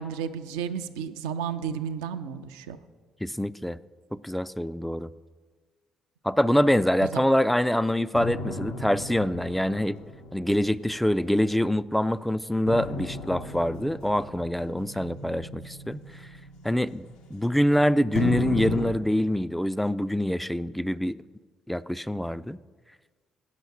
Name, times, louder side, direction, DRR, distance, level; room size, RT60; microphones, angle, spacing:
voice 1, 0.0-2.8 7.1-7.2, right 7 dB, 80° right, 8 dB, 0.4 m, -32 dB
voice 2, 3.2-3.8 4.1-5.1 6.2-10.0 10.3-16.3 16.6-21.2 21.7-22.6, equal, 5° left, 15 dB, 0.3 m, -25 dB
sound 1, 8.1-11.8 12.7-17.7 18.1-18.9, left 3 dB, 75° left, 0.8 m, -35 dB
8.2 x 5.7 x 7.1 m, 1.4 s
hypercardioid pair, 45°, 2 cm